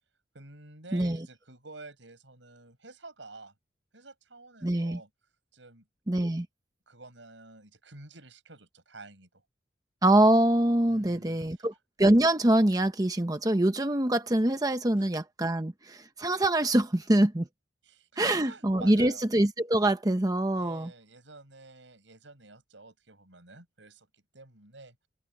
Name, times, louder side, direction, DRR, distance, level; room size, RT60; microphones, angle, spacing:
voice 1, 0.3-3.5 3.9-5.1 5.5-5.9 6.9-9.4 10.9-11.7 14.9-15.1 17.8-19.3 20.5-25.1, right 3 dB, 85° right, 6.2 m, -50 dB
voice 2, 0.9-1.2 4.6-5.0 6.1-6.5 10.0-17.5 18.2-20.9, right 1 dB, 20° right, 0.9 m, -24 dB
open air
head